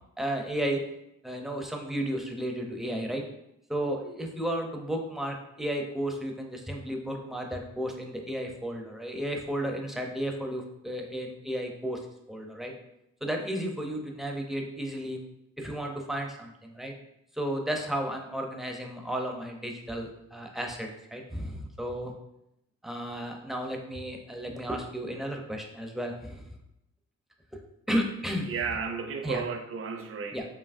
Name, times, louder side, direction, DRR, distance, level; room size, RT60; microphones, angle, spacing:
voice 1, 0.2-0.8 1.2-3.2 3.7-12.0 12.3-12.7 13.2-15.2 15.6-16.9 17.3-22.1 22.8-26.4 27.9-28.5 29.2-29.4 30.3-30.4, right 1 dB, ahead, 2 dB, 0.6 m, -33 dB
voice 2, 28.5-30.5, right 5 dB, 45° right, 6 dB, 0.6 m, -33 dB
4.9 x 2.9 x 2.5 m, 0.84 s
cardioid pair, 90°, 30 cm